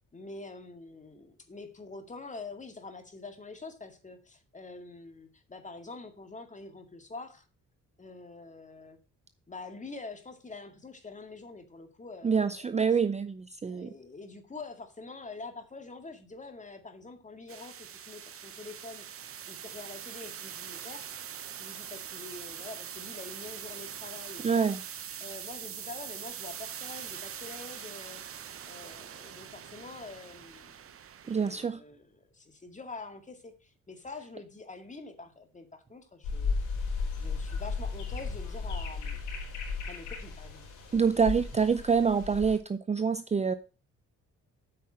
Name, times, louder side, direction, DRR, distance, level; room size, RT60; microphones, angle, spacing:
voice 1, 0.1-7.4 8.0-9.0 9.5-12.7 13.6-19.1 19.5-21.1 21.6-24.7 25.2-28.2 28.7-30.8 31.2-36.6 37.2-39.2 39.9-40.6, left 3 dB, 25° left, 2.1 m, -46 dB
voice 2, 12.2-13.9 24.4-24.8 31.3-31.8 40.9-43.5, right 6 dB, 25° right, 0.5 m, -26 dB
sound 1, 17.5-31.7, right 8 dB, 50° right, 0.8 m, -43 dB
sound 2, 36.2-42.6, left 4 dB, 85° left, 4.1 m, -35 dB
8.6 x 5.7 x 6.3 m
cardioid pair, 90°, 30 cm